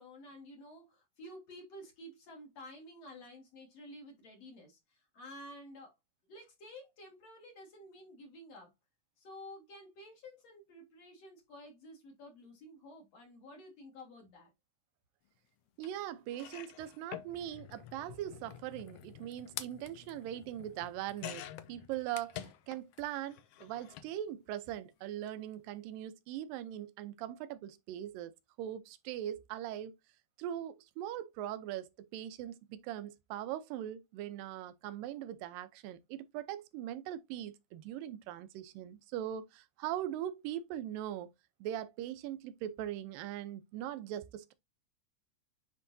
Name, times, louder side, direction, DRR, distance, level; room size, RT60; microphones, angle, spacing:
voice 1, 0.0-6.0 6.3-8.7 9.2-14.5, left 1 dB, 50° left, 2.9 m, -52 dB
sound 1, 15.8-15.9 16.3-23.0 23.3-24.1 25.1-25.3 25.6-25.7, left 12 dB, 80° left, 1.8 m, -48 dB
voice 2, 15.8-29.9 30.4-41.3 41.6-44.5, right 11 dB, 80° right, 2.4 m, -41 dB
9.7 x 3.8 x 2.6 m
omnidirectional pair, 4.0 m